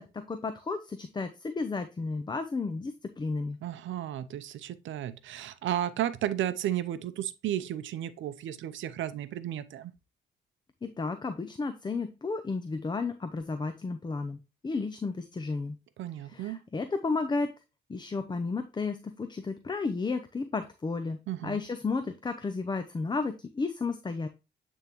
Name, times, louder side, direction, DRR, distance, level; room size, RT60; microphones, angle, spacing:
voice 1, 0.0-3.6 10.8-14.4 14.6-15.8 16.2-17.5 17.9-24.3, left 4 dB, 20° left, 0.6 m, -33 dB
voice 2, 3.6-9.9 16.0-16.6 21.3-21.6, right 11 dB, 75° right, 0.6 m, -33 dB
8.7 x 3.6 x 3.0 m
cardioid pair, 90°, 20 cm